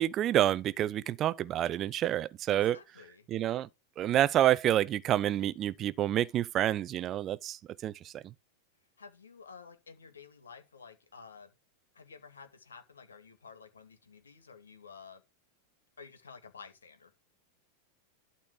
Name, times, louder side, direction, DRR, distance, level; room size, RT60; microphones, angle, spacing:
voice 1, 0.0-2.8 3.3-3.7 4.0-8.2, right 12 dB, 30° right, 0.6 m, -28 dB
voice 2, 2.5-3.3 9.0-11.5 11.9-15.2 16.0-17.1, left 5 dB, 70° left, 2.1 m, -52 dB
12.0 x 4.3 x 4.9 m
figure-of-eight pair, 90°, 0 cm